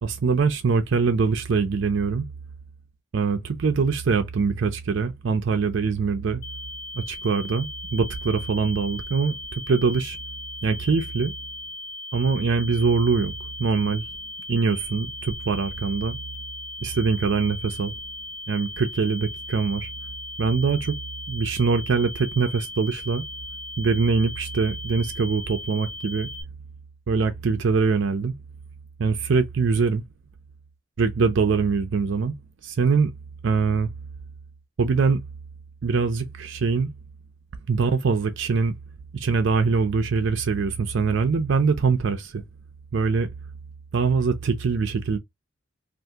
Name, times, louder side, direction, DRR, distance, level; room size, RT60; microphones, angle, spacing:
voice 1, 0.0-2.2 3.1-6.4 6.9-10.2 10.6-11.3 12.1-13.3 13.6-14.1 14.5-16.2 16.8-17.9 18.5-19.9 20.4-20.9 21.3-23.2 23.8-26.3 27.1-28.3 29.0-30.0 31.0-32.3 32.6-33.1 33.4-33.9 34.8-35.2 35.8-36.9 37.7-38.7 39.1-42.4 42.9-43.3 43.9-45.2, right 5 dB, 60° right, 0.5 m, -23 dB
sound 1, 6.4-26.4, left 2 dB, 45° left, 0.7 m, -38 dB
2.7 x 2.5 x 3.4 m
head